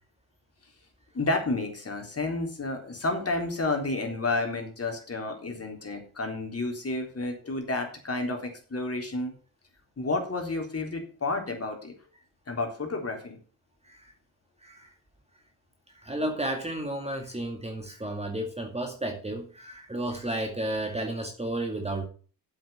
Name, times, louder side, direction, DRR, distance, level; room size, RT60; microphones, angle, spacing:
voice 1, 1.1-9.3 10.0-11.9 12.5-13.4, left 2 dB, 30° left, 3 dB, 3.7 m, -31 dB
voice 2, 14.6-14.9 15.9-22.1, right 1 dB, 10° right, 3 dB, 2.1 m, -32 dB
8.5 x 7.7 x 6.9 m, 0.39 s
hypercardioid pair, 50°, 50 cm